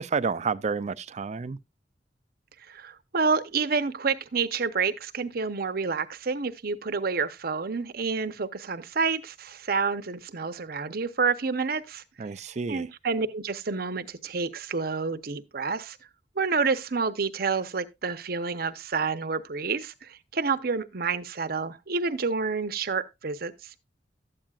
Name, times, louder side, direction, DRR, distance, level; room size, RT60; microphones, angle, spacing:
voice 1, 0.0-1.6 12.2-12.9, right 5 dB, 40° right, 0.5 m, -30 dB
voice 2, 2.7-12.0 12.7-16.0 16.4-23.7, right 4 dB, 60° right, 0.9 m, -29 dB
13.0 x 8.9 x 2.4 m
head